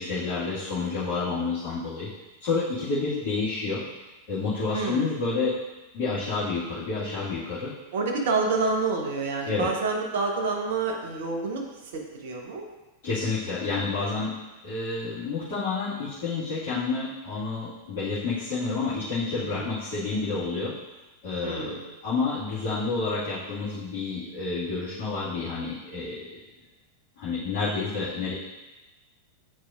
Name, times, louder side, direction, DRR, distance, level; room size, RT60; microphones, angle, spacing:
voice 1, 0.0-2.1 2.4-3.8 4.3-5.5 5.9-7.7 9.4-9.7 13.0-14.3 14.6-20.7 21.2-21.8 22.0-26.4 27.2-28.3, left 4 dB, 45° left, -13 dB, 2.0 m, -29 dB
voice 2, 4.7-5.2 7.9-12.6 19.4-19.7 21.4-21.9, right 3 dB, 55° right, 1 dB, 1.0 m, -28 dB
8.7 x 4.7 x 2.5 m, 1.1 s
figure-of-eight pair, 90°, 0 cm